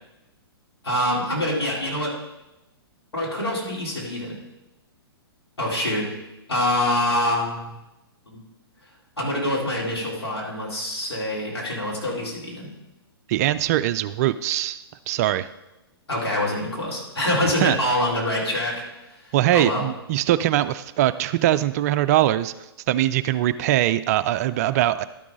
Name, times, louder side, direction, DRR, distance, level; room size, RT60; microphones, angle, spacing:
voice 1, 0.8-2.1 3.1-4.4 5.6-6.1 6.5-7.7 9.2-12.7 16.1-18.8 19.5-19.8, left 1 dB, 80° left, -4 dB, 3.5 m, -25 dB
voice 2, 13.3-15.5 17.6-17.8 19.3-22.5 22.9-25.0, right 13 dB, 40° right, 14 dB, 0.4 m, -22 dB
12.0 x 6.0 x 3.8 m, 0.96 s
figure-of-eight pair, 115°, 13 cm